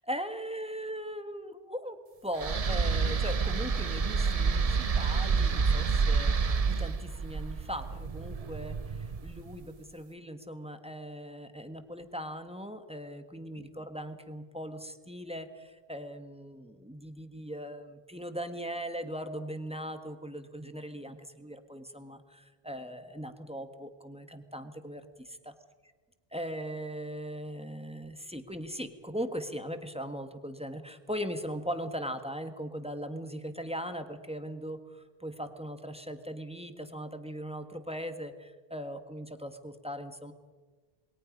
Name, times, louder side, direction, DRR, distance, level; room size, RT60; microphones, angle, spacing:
voice 1, 0.0-2.0 2.2-25.5 26.3-40.3, equal, 5° right, 7 dB, 1.5 m, -39 dB
sound 1, 2.4-9.5, right 5 dB, 40° right, 0.8 m, -28 dB
28.0 x 22.0 x 5.3 m, 1.3 s
omnidirectional pair, 1.0 m